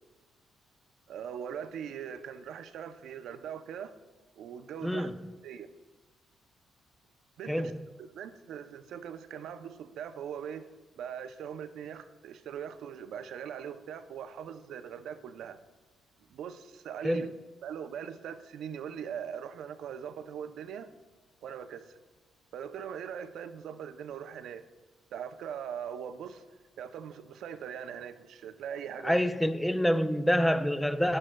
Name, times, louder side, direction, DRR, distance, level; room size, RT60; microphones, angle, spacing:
voice 1, 1.1-3.9 4.4-5.1 5.4-5.7 7.4-7.7 8.0-10.7 11.0-15.6 16.3-17.3 17.6-20.9 21.4-22.0 22.5-24.6 25.1-26.4 26.8-29.3, right 8 dB, 75° right, 0.5 m, -41 dB
voice 2, 4.8-5.2 7.5-7.8 17.0-17.3 29.0-31.2, equal, 5° left, 0.4 m, -27 dB
13.0 x 9.7 x 2.2 m
cardioid pair, 90°, 0 cm